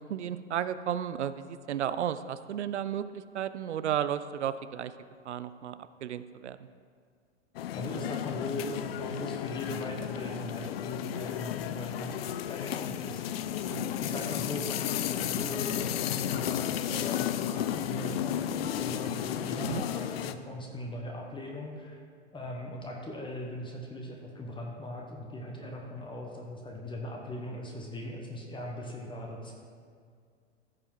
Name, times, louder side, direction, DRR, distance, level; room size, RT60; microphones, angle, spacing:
voice 1, 0.0-4.9 5.3-6.6 13.7-14.0 19.6-19.8 25.6-25.8, right 9 dB, 75° right, 13 dB, 0.5 m, -33 dB
sound 1, 7.6-20.4, left 10 dB, 60° left, 0.6 m, -33 dB
voice 2, 7.7-13.3 14.0-22.0 22.3-29.5, left 1 dB, 15° left, 0 dB, 1.1 m, -39 dB
14.5 x 5.4 x 4.6 m, 2.1 s
figure-of-eight pair, 100°, 35 cm